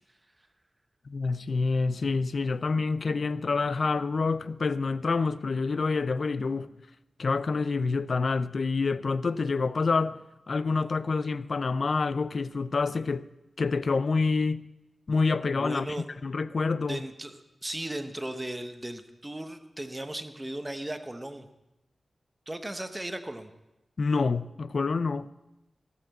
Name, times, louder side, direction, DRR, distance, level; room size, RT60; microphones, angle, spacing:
voice 1, 1.1-6.7 7.2-13.3 13.6-14.7 15.1-15.9 16.2-17.0 24.0-25.3, left 4 dB, 50° left, 0.5 m, -27 dB
voice 2, 15.5-16.1 16.9-21.5 22.5-23.5, right 1 dB, 15° right, 0.9 m, -36 dB
16.5 x 6.7 x 7.7 m
wide cardioid pair, 125°, 0 cm